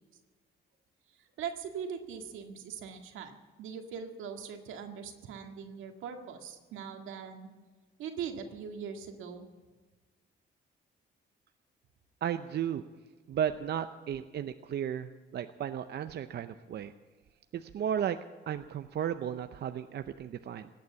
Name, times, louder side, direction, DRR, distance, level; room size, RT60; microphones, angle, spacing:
voice 1, 1.1-7.5 8.0-9.5, right 7 dB, 90° right, 4 dB, 1.9 m, -41 dB
voice 2, 12.2-12.8 13.3-16.9 17.5-18.2 18.5-20.7, right 9 dB, 60° right, 9 dB, 0.6 m, -34 dB
17.5 x 9.4 x 8.5 m, 1.4 s
cardioid pair, 90°, 20 cm